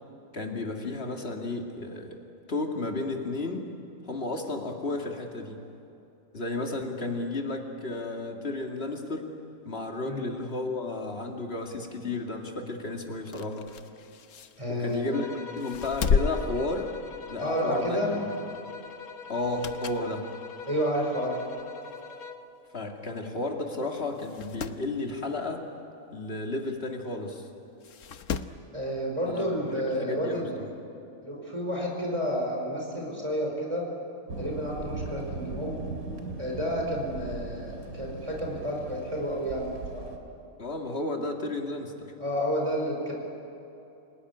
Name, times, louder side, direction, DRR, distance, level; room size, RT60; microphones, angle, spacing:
voice 1, 0.3-2.2 2.5-3.6 4.0-5.6 6.3-9.3 9.6-13.7 14.7-15.2 15.5-16.9 17.3-18.3 19.3-20.3 22.7-25.6 26.1-27.5 29.3-30.6 40.6-42.1, left 2 dB, 45° left, 2 dB, 2.6 m, -33 dB
sound 1, 13.1-15.1 15.6-17.4 17.8-18.0 19.3-20.1 20.6-20.7 21.6-21.7 21.9-22.0 22.2-22.3 23.2-23.3 23.7-23.8 24.1-24.8 26.7-26.8 27.8-28.6 29.9-30.0, left 6 dB, 65° left, 1.2 m, -32 dB
voice 2, 14.6-15.1 17.4-18.1 20.7-21.4 28.7-30.5 31.2-33.8 34.4-35.8 36.4-40.1 42.2-43.1, equal, 20° right, -1 dB, 5.0 m, -30 dB
sound 2, 15.1-22.6, left 5 dB, 85° left, 1.7 m, -44 dB
Thunder, 34.3-40.2, right 3 dB, 85° right, 3.1 m, -38 dB
28.5 x 18.5 x 9.8 m, 2.9 s
omnidirectional pair, 1.5 m